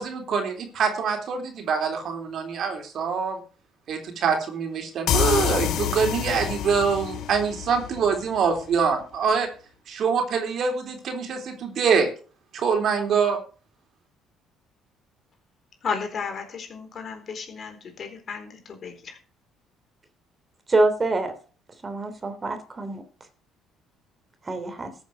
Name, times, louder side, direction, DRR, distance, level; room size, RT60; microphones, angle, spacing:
voice 1, 0.0-3.4 3.9-9.5 9.9-12.1 12.5-13.4, right 6 dB, 60° right, 5 dB, 3.6 m, -24 dB
sound 1, 5.1-8.6, left 10 dB, 70° left, 1.2 m, -27 dB
voice 2, 15.8-19.2, left 5 dB, 50° left, 5 dB, 4.1 m, -34 dB
voice 3, 20.7-21.3 21.8-23.0 24.4-24.9, right 2 dB, 25° right, 9 dB, 3.0 m, -25 dB
14.0 x 7.9 x 6.0 m, 0.39 s
supercardioid pair, 80°, 0 cm